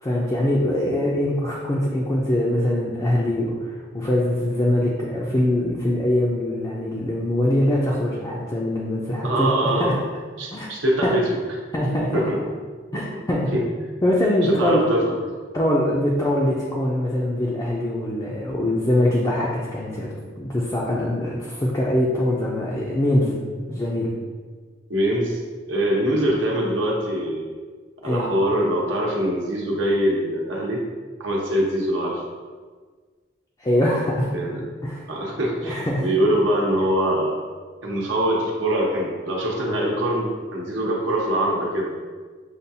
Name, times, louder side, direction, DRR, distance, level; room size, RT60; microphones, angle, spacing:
voice 1, 0.0-10.0 10.5-10.7 11.0-11.2 11.7-12.3 12.9-13.5 14.0-14.9 15.5-24.2 28.0-28.3 33.6-34.3 34.8-35.1 35.6-36.1, left 1 dB, 20° left, -4 dB, 0.4 m, -23 dB
voice 2, 9.2-10.0 10.4-11.3 12.1-12.4 13.1-13.2 13.5-13.6 14.4-15.1 24.9-25.4 25.7-27.5 28.0-30.8 31.2-32.2 34.3-34.6 35.1-37.4 37.8-41.9, right 1 dB, 80° right, -3 dB, 0.9 m, -23 dB
6.6 x 2.3 x 2.7 m, 1.5 s
head